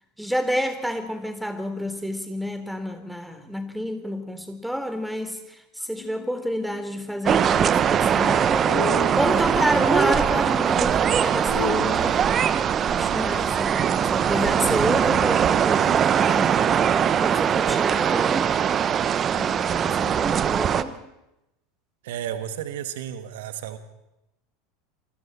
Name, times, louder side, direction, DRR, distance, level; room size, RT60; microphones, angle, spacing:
voice 1, 0.2-5.4 5.9-12.2 12.9-16.6 17.2-18.6 19.3-21.0, equal, ahead, 9 dB, 3.6 m, -29 dB
sound 1, 5.9-17.1, left 8 dB, 60° left, 3.5 m, -39 dB
sound 2, 7.3-20.8, right 8 dB, 30° right, 1.1 m, -21 dB
voice 2, 22.0-23.8, right 10 dB, 60° right, 8 dB, 2.1 m, -32 dB
28.5 x 24.5 x 4.4 m, 0.93 s
figure-of-eight pair, 75°, 0 cm